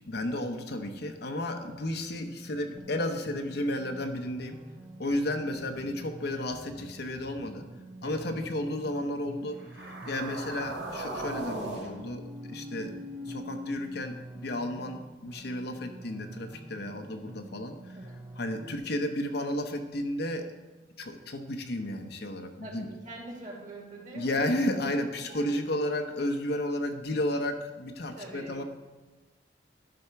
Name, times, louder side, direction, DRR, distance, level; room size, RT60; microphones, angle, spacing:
voice 1, 0.0-4.6 5.0-7.6 8.0-12.9 13.3-18.0 18.4-20.5 21.0-22.9 24.1-28.6, left 1 dB, 65° left, 5 dB, 0.9 m, -33 dB
sound 1, 2.8-18.8, right 2 dB, 25° right, 0.6 m, -47 dB
sound 2, 9.6-14.0, right 1 dB, 85° right, 1.9 m, -39 dB
voice 2, 17.9-18.2 22.6-24.5 25.2-25.6 28.2-28.6, right 2 dB, 45° right, -2 dB, 2.4 m, -44 dB
11.5 x 4.3 x 5.8 m, 1.2 s
head